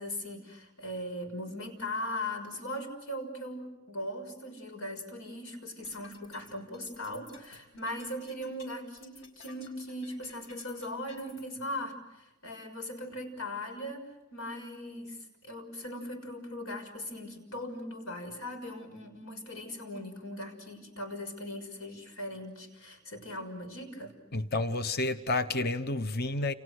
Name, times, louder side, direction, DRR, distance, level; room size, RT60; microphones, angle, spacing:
voice 1, 0.0-15.2 15.4-24.2, left 1 dB, 90° left, 6 dB, 6.2 m, -39 dB
sound 1, 5.7-11.4, left 4 dB, 65° left, 6.0 m, -54 dB
voice 2, 24.3-26.5, left 2 dB, 45° left, 10 dB, 1.0 m, -30 dB
30.0 x 29.5 x 6.6 m, 0.99 s
head